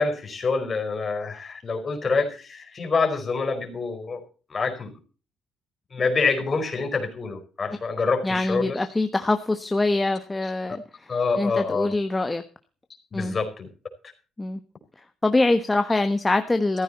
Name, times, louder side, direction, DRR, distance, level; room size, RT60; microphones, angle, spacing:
voice 1, 0.0-4.2 4.5-4.9 5.9-8.9 10.4-10.5 11.1-11.9 13.2-13.7 15.9-16.0, left 4 dB, 30° left, 5 dB, 4.8 m, -26 dB
voice 2, 8.2-11.1 11.4-12.4 13.1-13.3 14.4-14.6 15.2-16.8, left 2 dB, 15° left, 8 dB, 1.2 m, -24 dB
15.0 x 14.0 x 4.2 m, 0.36 s
cardioid pair, 135°, 0 cm